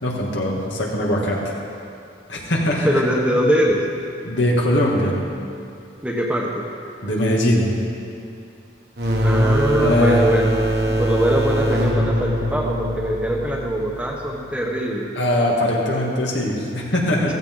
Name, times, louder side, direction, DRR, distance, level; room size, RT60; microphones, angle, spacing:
voice 1, 0.0-1.5 2.3-3.0 4.2-5.2 7.0-7.7 9.8-10.2 15.1-17.3, left 1 dB, 75° left, -3 dB, 2.5 m, -21 dB
voice 2, 2.8-3.8 6.0-6.7 9.2-10.5 10.9-15.1, equal, 5° right, -2 dB, 1.2 m, -22 dB
sound 1, 9.0-14.4, right 1 dB, 60° right, 1.5 m, -22 dB
15.5 x 14.5 x 4.0 m, 2.5 s
head